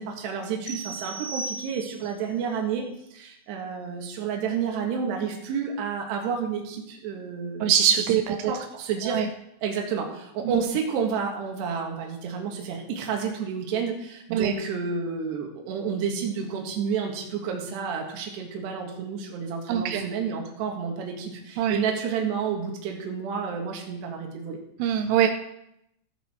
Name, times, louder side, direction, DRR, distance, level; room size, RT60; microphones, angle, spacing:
voice 1, 0.0-2.9 3.1-7.7 8.3-9.2 9.6-24.6, right 6 dB, 65° right, 1 dB, 3.5 m, -30 dB
sound 1, 0.7-2.2, right 3 dB, 90° left, 5.8 m, -36 dB
voice 2, 7.6-8.5 9.1-9.3 10.4-10.6 14.3-14.5 19.7-20.1 21.6-21.8 24.8-25.3, right 9 dB, 85° right, 6 dB, 3.2 m, -23 dB
15.5 x 8.3 x 4.4 m, 0.81 s
omnidirectional pair, 5.9 m